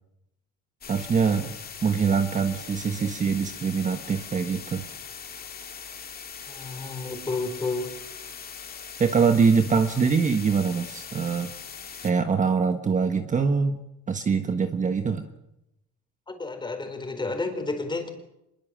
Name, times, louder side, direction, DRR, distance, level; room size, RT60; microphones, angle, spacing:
sound 1, 0.8-12.1, left 7 dB, 30° left, 2.2 m, -41 dB
voice 1, 0.9-1.5 1.8-4.8 9.0-11.5 12.0-13.8 14.1-15.3, right 5 dB, 25° right, 7 dB, 1.3 m, -23 dB
voice 2, 6.5-7.9 16.3-18.1, left 3 dB, 15° left, 6 dB, 4.2 m, -31 dB
25.5 x 22.0 x 7.6 m, 0.87 s
cardioid pair, 145°, 30 cm